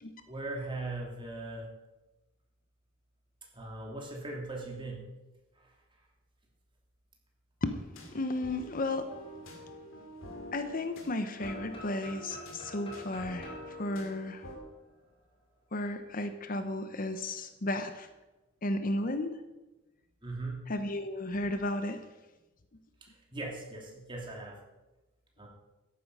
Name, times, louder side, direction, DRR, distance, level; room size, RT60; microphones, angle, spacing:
voice 1, 0.3-1.7 3.5-5.0 5.6-5.7 20.2-20.7 23.1-24.6 25.4-25.5, right 2 dB, 25° right, -1 dB, 3.0 m, -39 dB
sound 1, 7.9-14.6, left 1 dB, 75° left, 2.8 m, -47 dB
voice 2, 8.1-9.1 10.5-14.4 15.7-18.1 18.6-19.4 20.7-22.0, left 1 dB, 45° left, 8 dB, 0.9 m, -34 dB
sound 2, 11.4-15.2, left 1 dB, 25° left, 2.5 m, -49 dB
13.5 x 11.0 x 5.5 m, 1.1 s
head